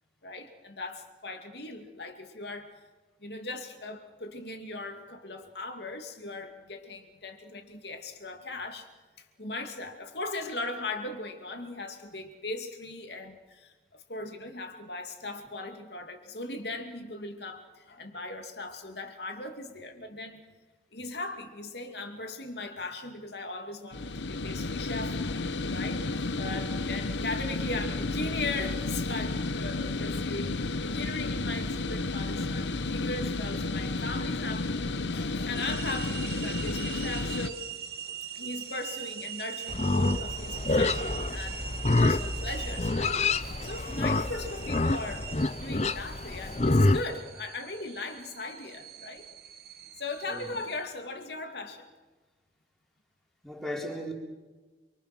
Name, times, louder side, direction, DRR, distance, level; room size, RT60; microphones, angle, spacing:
voice 1, 0.2-2.7 3.2-8.9 9.2-20.4 20.9-25.2 25.7-37.7 38.3-41.6 42.0-43.2 43.6-49.3 50.0-51.9, left 2 dB, 70° left, 5 dB, 2.6 m, -38 dB
sound 1, 23.9-37.5, left 3 dB, 85° left, 1.0 m, -32 dB
sound 2, 35.5-50.9, right 8 dB, 55° right, 1.8 m, -42 dB
Livestock farm animals working animals, 39.7-47.0, left 2 dB, 35° left, 0.7 m, -27 dB
voice 2, 53.4-54.1, equal, ahead, -1 dB, 4.2 m, -37 dB
27.5 x 24.5 x 6.2 m, 1.3 s
head